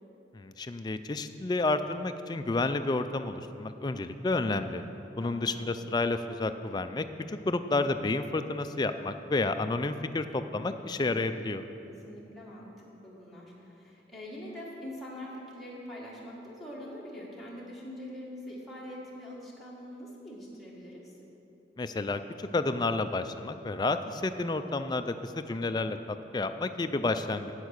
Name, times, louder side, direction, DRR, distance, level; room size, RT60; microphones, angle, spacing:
voice 1, 0.3-4.8 5.2-11.6 21.8-26.0 26.3-27.5, left 2 dB, 25° left, 9 dB, 0.3 m, -30 dB
voice 2, 5.2-5.5 11.9-21.1, left 1 dB, ahead, -7 dB, 1.6 m, -44 dB
8.4 x 8.1 x 6.5 m, 2.9 s
head